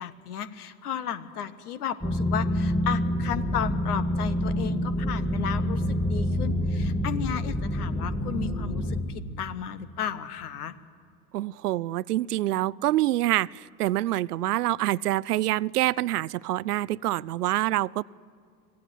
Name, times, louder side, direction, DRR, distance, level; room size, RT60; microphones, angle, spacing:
voice 1, 0.0-10.8, left 9 dB, 65° left, 14 dB, 1.4 m, -34 dB
sound 1, 2.0-9.0, equal, 5° left, 2.7 m, -27 dB
voice 2, 11.3-18.0, right 15 dB, 70° right, 24 dB, 0.5 m, -26 dB
25.0 x 16.0 x 9.2 m, 2.2 s
figure-of-eight pair, 75°, 48 cm